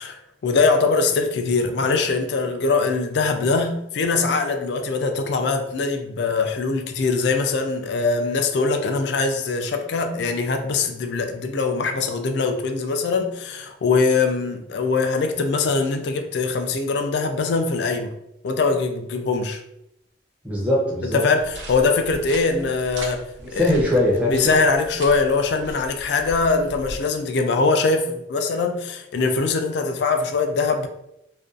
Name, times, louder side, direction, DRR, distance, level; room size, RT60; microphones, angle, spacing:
voice 1, 0.0-18.1 18.4-19.6 21.0-23.2 23.5-23.7 24.2-30.9, left 4 dB, 60° left, 0.3 m, -22 dB
voice 2, 20.4-21.3 23.4-24.6, left 1 dB, 5° right, 0.5 m, -21 dB
sound 1, 21.4-27.0, right 1 dB, 65° right, 0.5 m, -38 dB
2.5 x 2.2 x 2.4 m
head